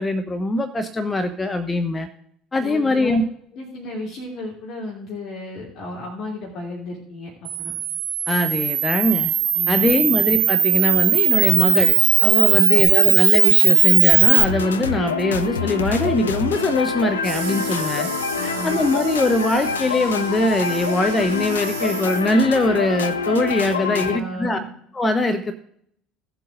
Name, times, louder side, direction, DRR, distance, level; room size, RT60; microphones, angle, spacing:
voice 1, 0.0-2.1 2.5-3.2 8.3-9.3 9.7-12.0 12.2-18.1 18.4-24.6 24.9-25.5, left 2 dB, 20° left, 8 dB, 0.8 m, -22 dB
voice 2, 2.6-3.2 3.5-7.7 9.5-10.1 12.5-12.8 18.3-18.8 23.7-24.7, left 1 dB, 50° left, -3 dB, 2.7 m, -33 dB
Camera, 7.4-14.4, right 10 dB, 45° right, 0.4 m, -17 dB
sound 1, 14.2-24.2, left 5 dB, 75° left, 0.4 m, -26 dB
sound 2, 17.2-22.6, right 9 dB, 65° right, 1.8 m, -36 dB
17.0 x 7.7 x 2.6 m, 0.69 s
figure-of-eight pair, 60°, 0 cm